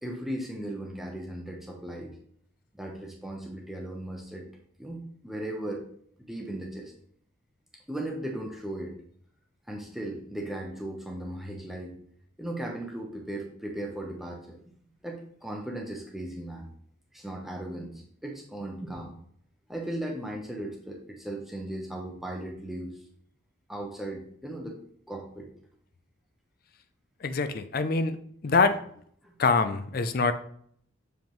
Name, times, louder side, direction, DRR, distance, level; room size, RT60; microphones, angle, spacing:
voice 1, 0.0-2.1 2.7-4.5 4.8-5.8 6.2-6.9 7.9-9.0 9.7-12.0 12.4-14.6 15.0-16.7 17.1-19.1 19.7-23.0 23.7-24.8 25.1-25.5 29.2-29.3, right 1 dB, ahead, -1 dB, 0.8 m, -37 dB
voice 2, 27.2-28.2 28.4-28.8 29.4-30.3, left 4 dB, 45° left, 11 dB, 0.4 m, -24 dB
7.1 x 4.9 x 3.1 m, 0.63 s
head